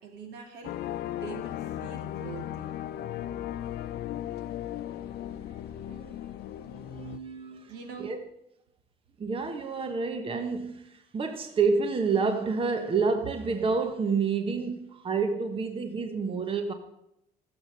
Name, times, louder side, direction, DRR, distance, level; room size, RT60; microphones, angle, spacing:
voice 1, 0.0-2.7 7.7-8.1, right 5 dB, 80° right, 2.9 m, -44 dB
sound 1, 0.6-7.2, left 12 dB, 70° left, 0.6 m, -36 dB
voice 2, 5.7-6.3 6.6-7.7 8.0-8.2 9.2-16.7, right 4 dB, 30° right, 1.2 m, -29 dB
15.5 x 7.2 x 6.6 m
cardioid pair, 110°, 17 cm